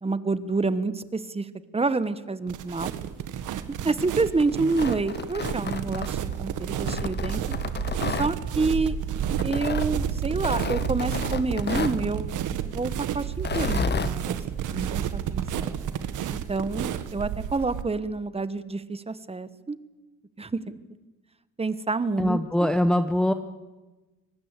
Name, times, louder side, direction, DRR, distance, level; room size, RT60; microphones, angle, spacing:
voice 1, 0.0-1.5 1.7-2.9 3.8-7.6 8.2-9.0 9.4-14.4 14.7-15.7 16.3-19.8 20.4-20.8 21.6-22.4, right 3 dB, 20° right, 14 dB, 1.4 m, -28 dB
sound 1, 2.5-17.8, right 9 dB, 85° right, 1.6 m, -31 dB
Tearing, 4.6-6.4 6.9-8.3 9.4-9.9 10.4-12.0 13.3-14.1, left 5 dB, 35° left, 1.3 m, -31 dB
voice 2, 22.2-23.3, left 1 dB, ahead, 9 dB, 1.0 m, -22 dB
25.0 x 19.5 x 8.3 m, 1.2 s
cardioid pair, 90°, 30 cm